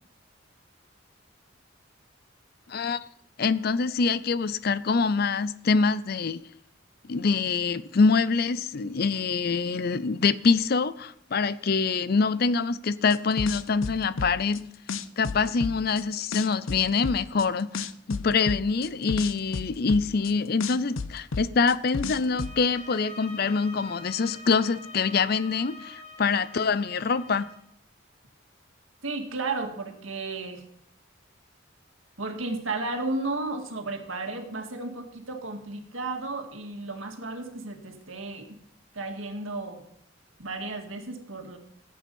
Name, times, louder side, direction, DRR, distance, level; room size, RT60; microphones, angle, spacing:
voice 1, 2.7-3.0 3.4-6.4 7.1-14.6 15.2-27.5, left 4 dB, 50° left, 0.5 m, -25 dB
sound 1, 13.1-14.6 14.9-16.0 16.3-17.4 17.7-20.3 20.6-22.5, left 4 dB, 85° left, 0.7 m, -32 dB
sound 2, 22.2-27.6, left 2 dB, 35° left, 2.4 m, -45 dB
voice 2, 29.0-30.6 32.2-38.5 38.9-39.8 40.4-41.6, right 3 dB, 85° right, 2.0 m, -33 dB
15.5 x 8.5 x 5.4 m
head